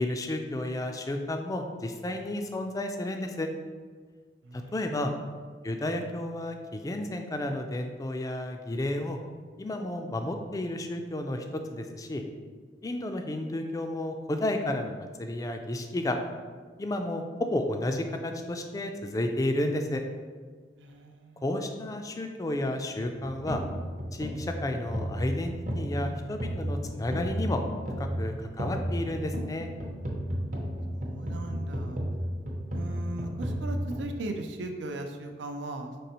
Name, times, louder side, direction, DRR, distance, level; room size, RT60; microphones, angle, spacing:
voice 1, 0.0-3.5 4.5-5.1 5.6-9.2 9.6-12.2 12.8-16.2 16.8-20.0 21.4-23.6 24.1-27.6 28.0-29.7, left 1 dB, 20° left, 5 dB, 0.3 m, -32 dB
voice 2, 4.4-5.2 20.8-21.4 30.9-32.0 32.7-35.9, right 2 dB, 90° right, 5 dB, 0.5 m, -38 dB
sound 1, 23.0-34.0, equal, 50° right, 0.7 m, -33 dB
5.3 x 3.2 x 2.9 m, 1.5 s
head